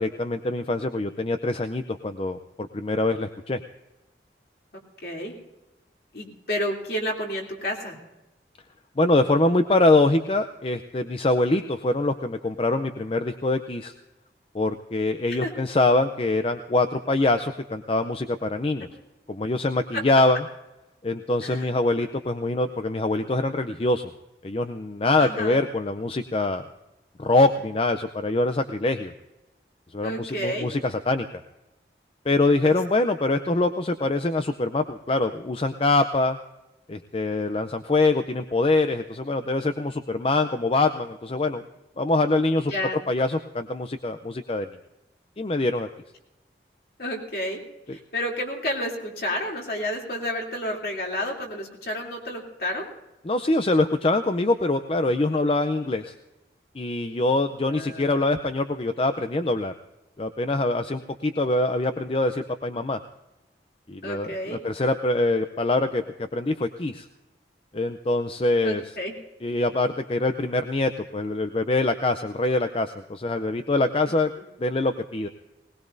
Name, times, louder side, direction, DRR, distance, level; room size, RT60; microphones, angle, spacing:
voice 1, 0.0-3.6 9.0-13.9 14.5-18.9 19.3-20.4 21.0-24.1 24.4-26.6 27.2-29.1 29.9-31.3 32.3-36.4 36.9-41.6 42.0-42.7 43.1-44.7 45.4-45.9 53.3-56.1 56.8-59.7 60.2-63.0 63.9-67.1 67.7-68.8 69.4-74.3 74.6-75.3, left 2 dB, 30° left, 9 dB, 0.5 m, -24 dB
voice 2, 5.0-5.3 6.1-8.0 15.3-15.5 19.9-20.0 21.4-21.7 25.2-25.6 30.0-30.7 32.6-32.8 42.7-43.0 47.0-47.6 47.9-52.9 57.7-58.2 64.0-64.6 68.6-69.1, left 1 dB, 55° left, -1 dB, 3.0 m, -30 dB
20.5 x 19.5 x 2.6 m, 0.99 s
head